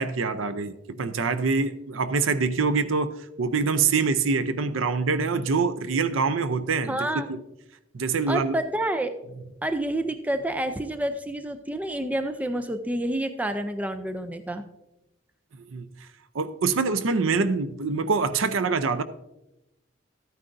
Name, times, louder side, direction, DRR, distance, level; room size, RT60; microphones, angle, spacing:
voice 1, 0.0-7.0 7.3-7.4 7.9-8.6 15.7-15.9 16.3-19.0, right 4 dB, 90° right, 12 dB, 0.6 m, -25 dB
voice 2, 6.9-7.3 8.3-9.2 9.6-14.6, right 1 dB, 10° right, 8 dB, 0.4 m, -28 dB
13.5 x 9.4 x 2.6 m, 0.91 s
head